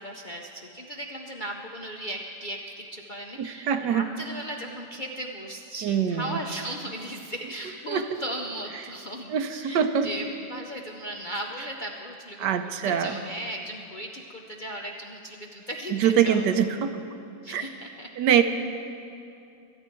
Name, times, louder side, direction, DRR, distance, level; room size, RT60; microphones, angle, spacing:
voice 1, 0.0-16.4 17.4-18.1, right 1 dB, 50° left, 1 dB, 0.6 m, -37 dB
voice 2, 3.4-4.1 5.8-6.4 7.9-8.2 9.3-10.1 12.4-13.2 15.9-17.0 17.5-17.6 18.2-18.4, right 8 dB, 80° right, 9 dB, 1.3 m, -24 dB
24.5 x 9.0 x 4.5 m, 2.6 s
omnidirectional pair, 1.8 m